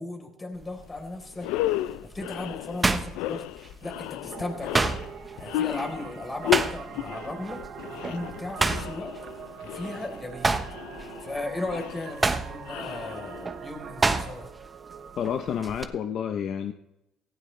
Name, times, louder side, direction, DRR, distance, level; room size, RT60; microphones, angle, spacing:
voice 1, 0.0-3.4 3.8-5.0 5.4-7.6 7.9-9.1 9.6-10.6 11.2-14.5, left 2 dB, 25° left, 3 dB, 4.0 m, -36 dB
sound 1, 0.6-0.9 1.4-3.9 4.2-7.1 7.4-7.7 8.0-10.0 10.3-14.7 14.9-15.8, right 3 dB, 20° right, 1.1 m, -28 dB
sound 2, 0.9-1.0 1.3-13.7, left 14 dB, 80° left, 0.5 m, -34 dB
sound 3, 4.3-15.6, right 7 dB, 50° right, 1.2 m, -43 dB
voice 2, 15.2-16.7, left 8 dB, 60° left, 7 dB, 0.8 m, -29 dB
17.5 x 15.5 x 3.3 m, 0.88 s
supercardioid pair, 80°, 0 cm